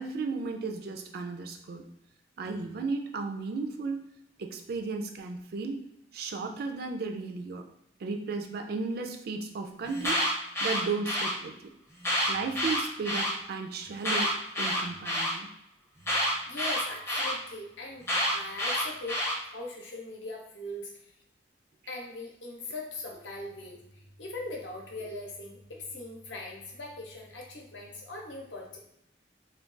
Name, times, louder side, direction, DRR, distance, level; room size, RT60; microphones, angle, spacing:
voice 1, 0.0-1.8 2.4-4.0 4.4-5.8 6.1-7.7 8.0-10.3 10.6-11.7 12.3-15.5, right 4 dB, 55° right, 4 dB, 0.3 m, -34 dB
Alarm, 9.9-11.3 12.0-13.3 14.0-15.3 16.1-17.3 18.1-19.3, equal, 15° left, 0.5 m, -28 dB
voice 2, 16.5-18.0 18.3-20.9 21.9-28.8, left 2 dB, 75° left, -1 dB, 0.7 m, -40 dB
2.3 x 2.2 x 3.7 m, 0.80 s
head